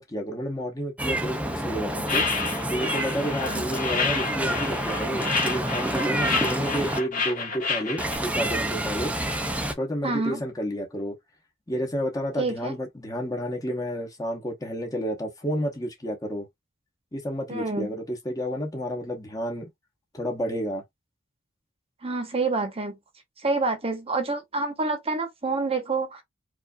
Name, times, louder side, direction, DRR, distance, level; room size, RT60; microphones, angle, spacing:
voice 1, 0.0-2.3 2.7-9.1 9.8-11.1 11.7-16.5 17.1-19.7 20.1-20.8, equal, 20° left, 0.9 m, -30 dB
Meow, 1.0-7.0 8.0-9.7, right 1 dB, 5° right, 0.6 m, -28 dB
sound 1, 2.1-8.2, left 4 dB, 45° left, 1.7 m, -29 dB
voice 2, 10.0-10.4 12.4-12.7 17.5-17.9 22.0-23.0 23.4-26.2, right 3 dB, 30° right, 1.0 m, -27 dB
4.7 x 2.6 x 2.3 m
head